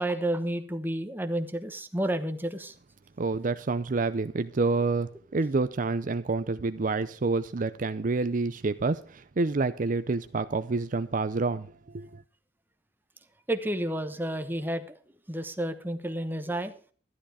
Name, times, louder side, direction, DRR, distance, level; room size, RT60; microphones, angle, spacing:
voice 1, 0.0-2.7 13.5-15.0 15.3-16.7, right 1 dB, 10° right, 1.0 m, -31 dB
voice 2, 3.2-11.7 11.9-12.2, right 3 dB, 45° right, 0.5 m, -28 dB
13.0 x 11.5 x 4.9 m
head